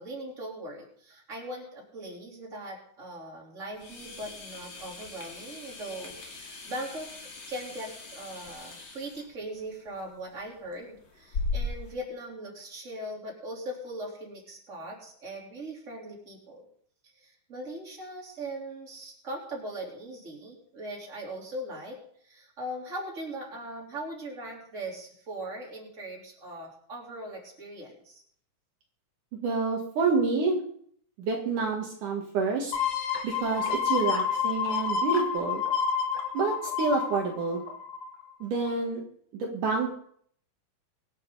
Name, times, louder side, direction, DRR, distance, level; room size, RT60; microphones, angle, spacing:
voice 1, 0.0-7.1 7.5-16.7 17.0-28.2, right 1 dB, 20° right, -2 dB, 3.6 m, -40 dB
sound 1, 3.7-11.9, left 3 dB, 35° left, 2.6 m, -39 dB
voice 2, 29.4-30.6 31.2-32.7 33.2-35.6 36.3-37.6 38.4-39.0 39.3-39.9, right 4 dB, 70° right, 1 dB, 2.9 m, -28 dB
sound 2, 32.7-38.2 38.7-38.8, left 6 dB, 90° left, 3.7 m, -29 dB
24.5 x 8.9 x 3.9 m, 0.63 s
omnidirectional pair, 3.9 m